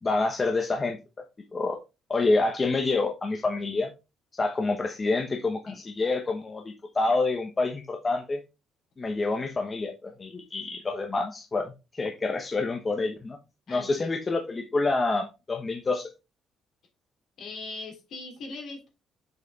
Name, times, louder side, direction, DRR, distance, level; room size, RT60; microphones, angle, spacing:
voice 1, 0.0-1.0 1.5-1.8 2.1-3.9 4.4-8.4 9.0-13.4 13.7-16.1, left 3 dB, 25° left, 3 dB, 1.0 m, -27 dB
voice 2, 13.7-14.1 17.4-18.9, left 3 dB, 65° left, 1 dB, 3.2 m, -40 dB
6.7 x 4.9 x 3.6 m, 0.27 s
cardioid pair, 140°, 0 cm